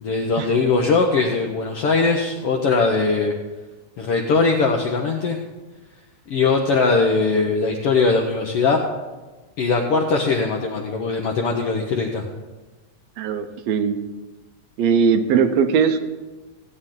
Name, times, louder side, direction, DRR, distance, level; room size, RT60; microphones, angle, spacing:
voice 1, 0.0-3.3 4.0-5.4 6.3-8.8 9.6-12.2, left 4 dB, 70° left, 1 dB, 1.4 m, -20 dB
voice 2, 13.2-14.0 14.8-16.0, right 6 dB, 75° right, 8 dB, 1.7 m, -19 dB
16.0 x 8.8 x 3.8 m, 1.2 s
omnidirectional pair, 3.6 m